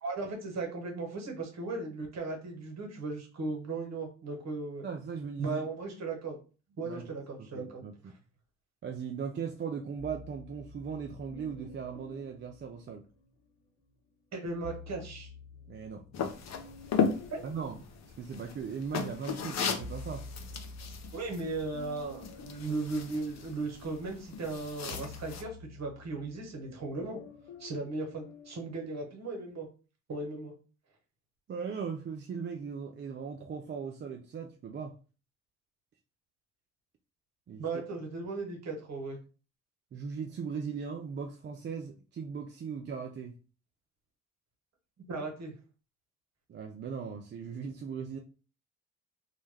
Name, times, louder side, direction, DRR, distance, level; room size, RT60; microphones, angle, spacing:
voice 1, 0.0-4.9 5.4-6.4 6.8-7.8 14.3-15.3 17.3-17.4 21.1-27.2 27.6-29.7 30.1-30.5 37.6-39.2 45.1-45.5, right 3 dB, 50° right, 2 dB, 1.1 m, -37 dB
voice 2, 4.8-5.6 6.8-7.1 7.4-8.1 8.8-13.0 15.7-16.0 17.4-17.8 18.2-20.2 31.5-34.9 37.5-37.6 39.9-43.3 46.5-48.2, right 6 dB, 35° right, 3 dB, 0.4 m, -38 dB
sound 1, 10.0-13.5 14.4-18.9 19.3-28.6, left 3 dB, 90° left, 0.6 m, -50 dB
sound 2, 16.1-25.4, left 6 dB, 50° left, 0.6 m, -36 dB
2.2 x 2.1 x 3.2 m, 0.35 s
hypercardioid pair, 50°, 34 cm